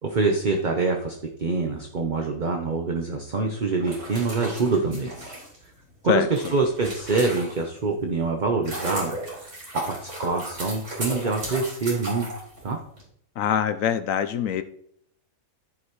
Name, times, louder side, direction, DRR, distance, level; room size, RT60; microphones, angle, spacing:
voice 1, 0.0-5.1 6.0-9.2 9.9-12.3 12.6-12.8, right 3 dB, 40° right, 2 dB, 1.0 m, -25 dB
sound 1, 3.7-7.8 8.3-13.0, right 1 dB, 60° right, 3.8 m, -35 dB
voice 2, 13.4-14.6, left 9 dB, 70° left, 11 dB, 1.0 m, -23 dB
14.0 x 5.6 x 3.2 m, 0.67 s
omnidirectional pair, 1.5 m